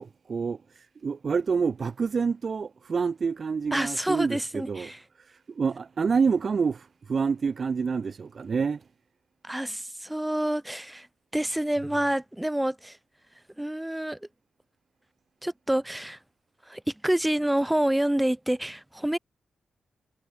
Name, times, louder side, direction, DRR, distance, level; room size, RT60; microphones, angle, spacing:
voice 1, 0.0-4.9 5.2-8.8, right 5 dB, 55° right, 0.4 m, -28 dB
voice 2, 3.7-5.0 9.4-11.1 11.3-13.0 13.6-14.2 15.4-16.2 16.7-19.2, right 1 dB, 10° right, 2.5 m, -27 dB
cardioid pair, 70°, 0 cm